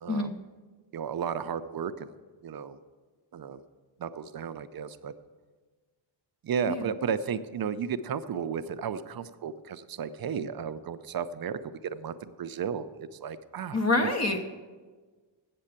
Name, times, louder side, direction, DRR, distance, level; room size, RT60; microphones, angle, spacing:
voice 1, 0.1-0.4 6.7-6.9 13.7-14.5, left 2 dB, 35° left, 5 dB, 0.9 m, -27 dB
voice 2, 0.9-2.2 2.4-2.8 3.3-3.6 4.0-5.1 6.4-14.1, right 7 dB, 50° right, 11 dB, 0.6 m, -34 dB
8.3 x 7.7 x 8.7 m, 1.4 s
wide cardioid pair, 120°, 47 cm